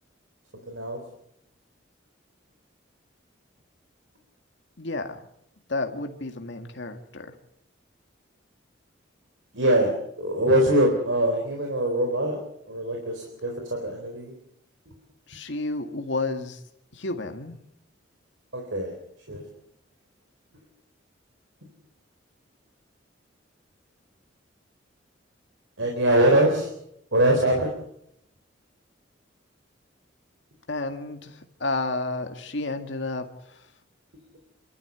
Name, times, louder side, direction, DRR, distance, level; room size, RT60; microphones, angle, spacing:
voice 1, 0.7-1.0 9.5-12.4 12.7-14.3 14.9-15.0 18.5-19.0 19.3-19.4 25.8-26.7 27.1-27.7, right 1 dB, 90° right, 1 dB, 4.0 m, -23 dB
voice 2, 4.8-5.3 5.7-7.4 15.3-16.6 16.9-17.6 30.7-33.7, left 2 dB, 70° left, 6 dB, 1.9 m, -31 dB
29.0 x 13.0 x 8.1 m, 0.75 s
head